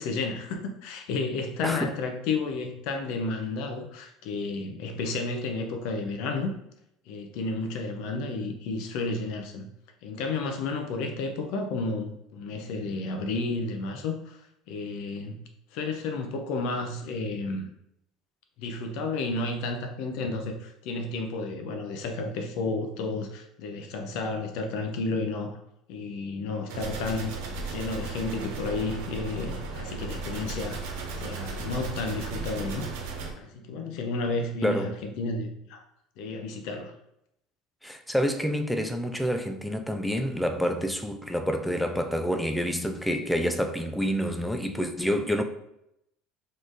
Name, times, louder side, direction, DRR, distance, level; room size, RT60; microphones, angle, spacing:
voice 1, 0.0-6.5 7.1-9.7 10.0-14.4 14.7-15.4 15.7-17.7 18.6-25.6 25.9-32.9 33.3-35.8 36.2-36.9, left 3 dB, 55° left, 0.7 m, -32 dB
sound 1, 26.7-33.3, right 4 dB, 80° right, 1.1 m, -35 dB
voice 2, 34.6-34.9 37.8-45.4, equal, ahead, 0.3 m, -28 dB
4.3 x 3.2 x 3.8 m
cardioid pair, 180°, 0 cm